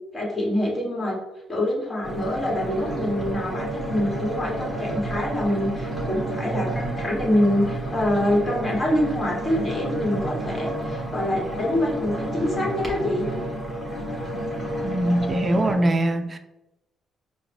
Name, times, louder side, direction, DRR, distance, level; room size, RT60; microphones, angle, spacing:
voice 1, 0.1-1.2 1.5-13.3, left 1 dB, 30° left, -2 dB, 1.3 m, -25 dB
sound 1, 2.0-15.8, right 1 dB, 10° left, 1.3 m, -30 dB
voice 2, 14.8-16.4, right 1 dB, 30° right, 7 dB, 0.4 m, -22 dB
4.7 x 2.2 x 3.4 m, 0.98 s
cardioid pair, 90°, 0 cm